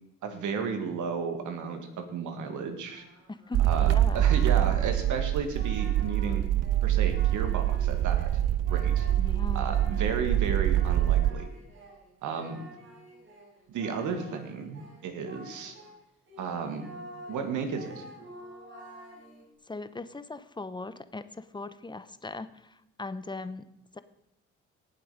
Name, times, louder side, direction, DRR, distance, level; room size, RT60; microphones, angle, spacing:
voice 1, 0.2-3.0 3.7-6.4 6.8-8.3 8.7-9.1 9.5-11.5 12.2-12.6 13.7-15.7 16.4-16.9 17.3-18.1, right 5 dB, 80° right, 5 dB, 2.4 m, -33 dB
Singing, 2.8-16.0 16.3-19.5, right 1 dB, 40° right, 5.1 m, -49 dB
voice 2, 3.3-4.3 9.2-9.8 19.7-23.7 23.9-24.0, left 3 dB, 15° left, 13 dB, 0.9 m, -39 dB
sound 1, 3.5-11.3, right 12 dB, 60° right, 0.5 m, -25 dB
18.0 x 7.7 x 5.2 m, 0.86 s
cardioid pair, 90°, 30 cm